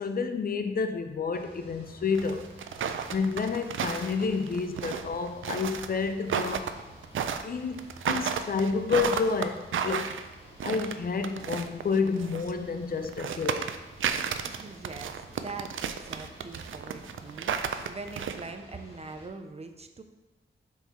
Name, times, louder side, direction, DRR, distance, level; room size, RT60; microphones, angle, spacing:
voice 1, 0.0-2.5 2.8-6.7 7.4-10.2 10.6-13.7, left 5 dB, 50° left, 0.5 m, -30 dB
sound 1, 1.3-19.3, equal, 30° left, 1.5 m, -52 dB
sound 2, 2.1-12.5 13.0-18.5, right 7 dB, 90° right, 0.4 m, -33 dB
voice 2, 14.4-20.0, right 3 dB, 35° right, 0.4 m, -43 dB
5.7 x 4.6 x 4.2 m
wide cardioid pair, 145°, 20 cm